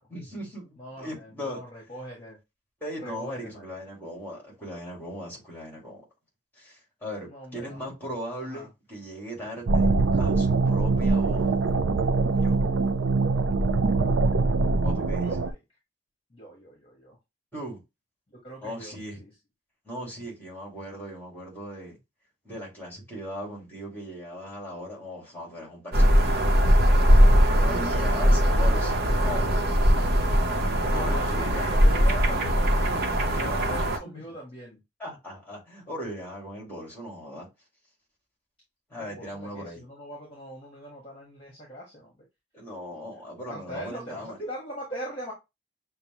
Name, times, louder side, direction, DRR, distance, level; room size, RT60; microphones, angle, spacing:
voice 1, 0.1-1.6 2.8-6.0 6.6-11.5 12.3-12.6 14.8-15.3 17.5-17.8 18.6-19.2 19.8-22.0 22.4-26.7 27.0-27.2 27.6-29.8 30.8-31.6 33.7-34.2 35.0-37.5 38.9-39.8 42.5-44.4, equal, 10° left, 2.4 m, -38 dB
voice 2, 0.8-2.4 3.0-3.6 7.2-7.8 8.4-8.7 15.2-15.6 16.3-17.2 18.4-19.3 30.9-34.8 38.9-42.2 43.4-45.3, right 1 dB, 30° left, 1.4 m, -41 dB
sound 1, 9.7-15.5, right 3 dB, 75° right, 0.4 m, -23 dB
sound 2, 25.9-34.0, equal, 55° right, 0.9 m, -21 dB
6.5 x 2.2 x 3.0 m
head